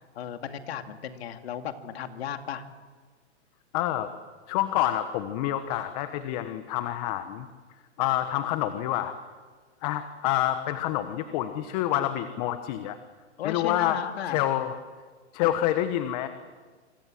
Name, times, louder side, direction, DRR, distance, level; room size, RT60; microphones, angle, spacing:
voice 1, 0.1-2.6 13.4-14.4, left 9 dB, 60° left, 6 dB, 2.6 m, -35 dB
voice 2, 3.7-4.1 4.5-7.5 8.0-9.1 9.8-13.0 13.4-14.8 15.3-16.3, left 13 dB, 35° left, 9 dB, 1.4 m, -27 dB
26.5 x 25.5 x 7.8 m, 1.5 s
hypercardioid pair, 150°, 35 cm